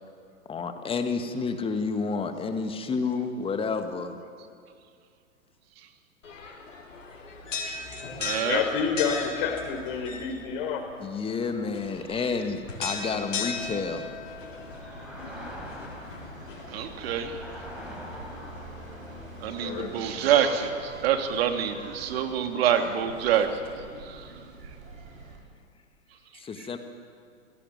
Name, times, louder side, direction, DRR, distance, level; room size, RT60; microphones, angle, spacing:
voice 1, 0.5-4.2 11.0-14.1 26.3-26.8, left 4 dB, 15° left, 7 dB, 1.9 m, -30 dB
sound 1, 6.2-20.7, left 4 dB, 65° left, 4.7 m, -39 dB
voice 2, 7.6-8.6 16.7-17.4 19.4-23.6 24.0-24.3 26.6-26.7, right 9 dB, 50° right, 6 dB, 2.9 m, -27 dB
voice 3, 8.4-10.8 19.6-20.1 20.3-20.5, left 6 dB, 45° left, 5 dB, 4.3 m, -29 dB
sound 2, 11.8-21.6, equal, ahead, 6.1 m, -47 dB
sound 3, 13.4-25.4, right 2 dB, 80° right, 5.9 m, -46 dB
27.0 x 17.5 x 9.4 m, 2.3 s
figure-of-eight pair, 110°, 40 cm